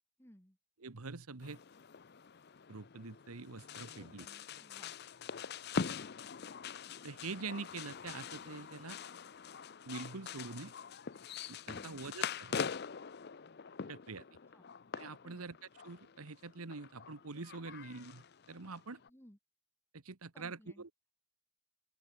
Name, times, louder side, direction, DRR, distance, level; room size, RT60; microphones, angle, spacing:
voice 1, 0.2-0.6 3.9-5.0 14.1-14.8 15.2-15.5 19.1-19.4 20.3-20.8, equal, 10° left, 2.6 m, -61 dB
voice 2, 0.8-1.6 2.7-4.3 7.0-9.0 9.8-10.7 11.5-12.6 13.9-14.3 14.9-15.5 15.8-19.0 19.9-20.9, right 4 dB, 85° right, 1.2 m, -45 dB
sound 1, 1.4-19.1, left 6 dB, 50° left, 0.6 m, -44 dB
open air
head